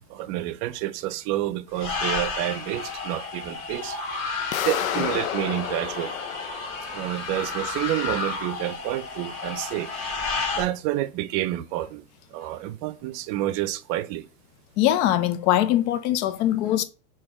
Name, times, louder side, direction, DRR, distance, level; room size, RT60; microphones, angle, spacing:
voice 1, 0.1-4.2 4.6-6.2 6.9-9.9 10.6-14.3, right 14 dB, 45° right, 0.5 m, -29 dB
sound 1, 1.8-10.6, left 4 dB, 30° left, 1.9 m, -32 dB
sound 2, 4.5-7.4, left 12 dB, 90° left, 0.6 m, -31 dB
voice 2, 14.8-16.8, left 13 dB, 55° left, 0.8 m, -22 dB
3.4 x 3.1 x 4.5 m
hypercardioid pair, 110°, 39 cm